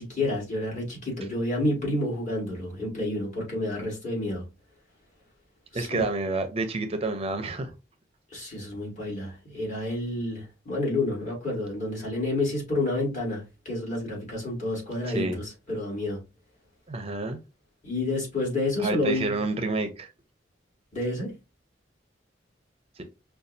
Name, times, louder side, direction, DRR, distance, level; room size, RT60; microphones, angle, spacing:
voice 1, 0.0-4.4 5.7-6.1 8.3-16.2 17.8-19.3 20.9-21.3, left 2 dB, 40° left, 2.1 m, -29 dB
voice 2, 5.7-7.7 15.1-15.4 16.9-17.4 18.8-20.1 23.0-23.1, right 3 dB, 35° right, 0.5 m, -29 dB
5.3 x 2.3 x 2.6 m
head